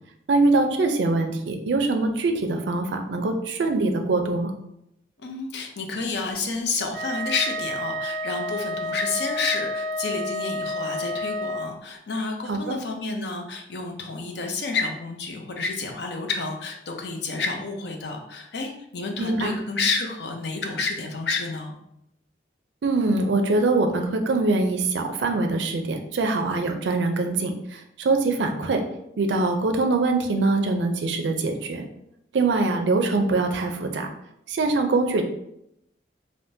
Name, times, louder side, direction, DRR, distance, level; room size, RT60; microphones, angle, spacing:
voice 1, 0.3-4.5 12.5-12.8 19.2-19.6 22.8-28.8 29.2-31.9 32.3-34.1 34.5-35.2, right 3 dB, 80° right, 5 dB, 0.4 m, -23 dB
voice 2, 5.2-21.8, left 4 dB, 65° left, 3 dB, 0.5 m, -30 dB
Wind instrument woodwind instrument, 6.9-11.7, equal, 10° left, 1.0 m, -30 dB
3.6 x 2.5 x 2.6 m, 0.79 s
head